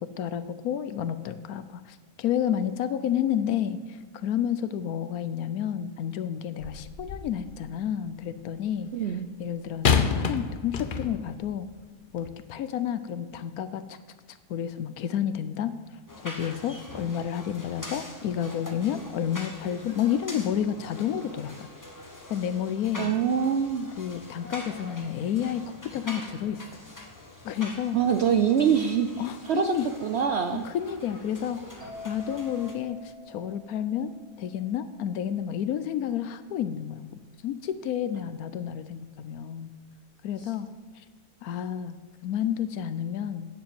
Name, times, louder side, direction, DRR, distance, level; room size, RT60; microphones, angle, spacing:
voice 1, 0.0-8.9 9.4-11.7 12.1-14.0 14.3-15.7 16.2-21.7 22.3-23.1 24.0-26.6 27.4-28.0 29.2-29.9 30.5-34.1 34.4-39.7 40.2-40.7 40.9-41.0 41.4-43.5, left 9 dB, 70° left, 12 dB, 1.0 m, -30 dB
sound 1, 6.6-7.4 9.8-11.4 12.2-12.3, left 6 dB, 55° left, 0.6 m, -27 dB
voice 2, 8.9-9.3 23.0-23.9 27.9-29.7 30.0-30.6, right 7 dB, 70° right, 6 dB, 0.6 m, -24 dB
sound 2, 16.1-32.7, left 1 dB, 15° left, 0.8 m, -44 dB
sound 3, 31.8-35.4, equal, 35° right, 2.6 m, -47 dB
9.4 x 7.0 x 7.6 m, 1.4 s
omnidirectional pair, 1.7 m